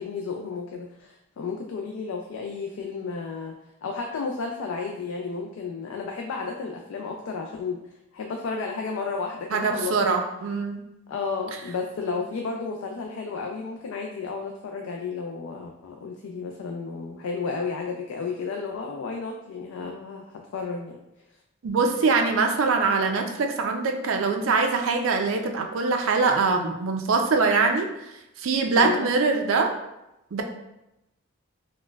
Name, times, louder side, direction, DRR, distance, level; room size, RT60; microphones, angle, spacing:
voice 1, 0.0-3.5 3.8-7.8 8.1-10.2 11.1-21.0 28.7-29.1, left 4 dB, 85° left, 1 dB, 0.3 m, -32 dB
voice 2, 9.5-10.8 21.6-27.9 28.4-29.7 30.3-30.4, right 4 dB, 75° right, 4 dB, 0.4 m, -23 dB
4.2 x 2.1 x 2.2 m, 0.90 s
head